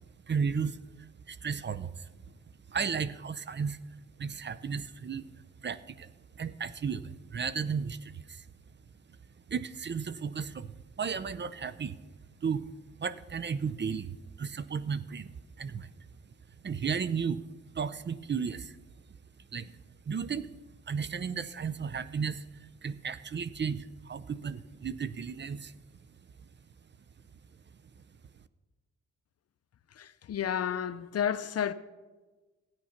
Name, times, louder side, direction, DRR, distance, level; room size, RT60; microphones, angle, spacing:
voice 1, 0.3-2.1 2.7-3.8 4.2-5.3 5.6-6.1 6.4-8.5 9.5-12.0 12.4-12.6 13.0-15.3 15.6-15.9 16.6-17.4 17.7-18.8 19.5-19.7 20.1-20.5 20.9-25.7, right 6 dB, 35° right, 0.6 m, -34 dB
voice 2, 30.0-31.7, left 9 dB, 55° left, 0.6 m, -31 dB
13.5 x 9.6 x 5.8 m
cardioid pair, 90°, 30 cm